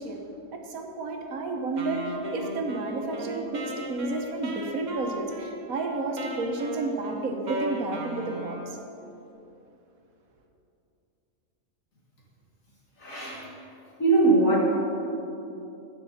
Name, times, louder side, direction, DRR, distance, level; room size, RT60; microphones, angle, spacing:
voice 1, 0.0-8.8, right 2 dB, 80° right, 3 dB, 1.5 m, -31 dB
Wind instrument woodwind instrument, 1.8-8.9, right 1 dB, 35° right, 1.0 m, -37 dB
voice 2, 13.0-13.5 14.0-14.6, right 2 dB, 70° left, -5 dB, 2.9 m, -21 dB
13.0 x 8.8 x 4.2 m, 2.8 s
omnidirectional pair, 1.5 m